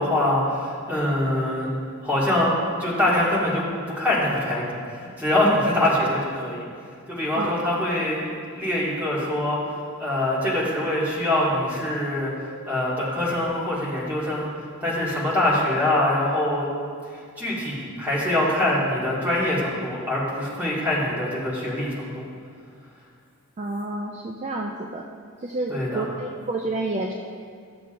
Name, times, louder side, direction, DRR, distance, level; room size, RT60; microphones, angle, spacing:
voice 1, 0.0-1.7 2.0-2.5 2.8-6.6 7.1-9.6 10.0-12.3 12.7-14.5 14.8-16.7 17.4-22.2 25.7-26.1, left 1 dB, 10° right, -8 dB, 2.0 m, -24 dB
voice 2, 7.4-7.8 23.6-25.1 25.4-27.1, right 2 dB, 30° right, 1 dB, 0.4 m, -29 dB
13.0 x 6.8 x 2.6 m, 2.1 s
head